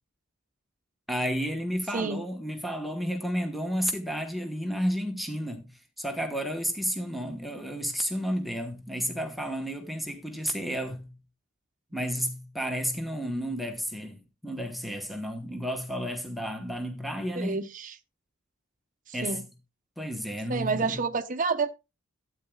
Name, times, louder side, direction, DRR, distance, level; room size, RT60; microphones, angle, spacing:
voice 1, 1.1-5.7 6.0-11.1 11.9-17.6 19.1-19.4 20.0-21.0, equal, ahead, 1.1 m, -32 dB
voice 2, 17.3-17.9 19.1-19.5 20.5-21.7, right 4 dB, 40° right, 0.8 m, -29 dB
12.0 x 9.0 x 2.3 m
head